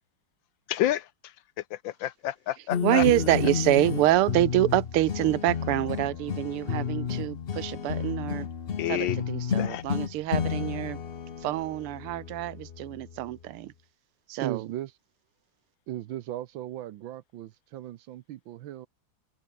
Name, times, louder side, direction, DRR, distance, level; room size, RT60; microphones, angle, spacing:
voice 1, 0.7-1.1 1.7-3.0 8.8-9.2 9.6-9.8, left 13 dB, 75° left, 1.3 m, -29 dB
sound 1, 2.7-13.3, left 7 dB, 55° left, 0.6 m, -32 dB
voice 2, 2.8-8.5 8.9-11.0 11.4-13.7 14.3-14.7, right 15 dB, 90° right, 1.7 m, -26 dB
voice 3, 14.4-14.9 15.9-18.9, right 13 dB, 70° right, 1.5 m, -37 dB
omnidirectional pair, 2.4 m